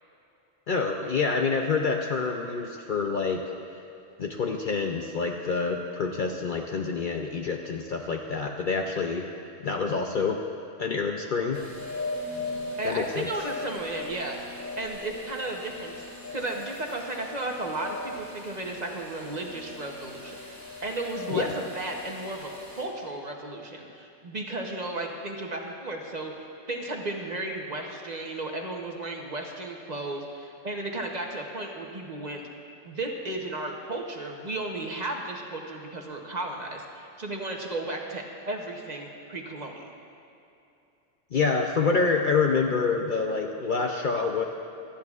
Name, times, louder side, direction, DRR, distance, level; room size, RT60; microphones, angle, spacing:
voice 1, 0.7-3.4 4.2-9.3 9.6-10.4 10.8-11.6 12.8-13.3 21.3-21.5 41.3-44.4, left 4 dB, 55° left, 2 dB, 0.6 m, -27 dB
sound 1, 11.5-22.8, left 2 dB, 15° left, 2.3 m, -39 dB
voice 2, 12.8-14.4 14.8-15.9 16.3-22.5 22.8-26.3 26.7-32.4 32.8-39.9, right 2 dB, 40° right, 1 dB, 0.9 m, -34 dB
18.5 x 13.0 x 2.4 m, 2.7 s
omnidirectional pair, 1.3 m